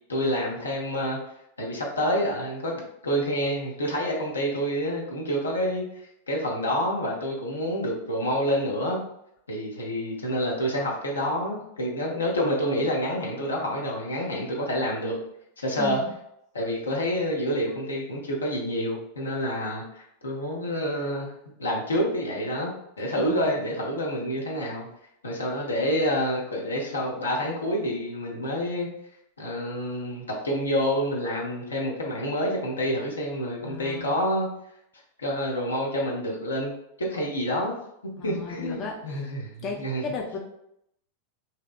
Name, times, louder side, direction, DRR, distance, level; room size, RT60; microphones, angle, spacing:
voice 1, 0.1-1.2 1.6-5.8 6.3-9.0 9.5-15.2 15.6-16.0 16.5-21.3 21.6-22.7 23.0-24.9 25.2-28.9 29.4-34.5 35.2-36.7 37.0-37.8 38.2-40.0, equal, 75° left, -2 dB, 0.6 m, -28 dB
voice 2, 15.8-16.1 23.1-23.5 33.6-34.1 38.2-39.3 39.6-40.4, left 4 dB, 30° left, -1 dB, 0.4 m, -35 dB
2.8 x 2.0 x 2.4 m, 0.77 s
figure-of-eight pair, 90°, 0 cm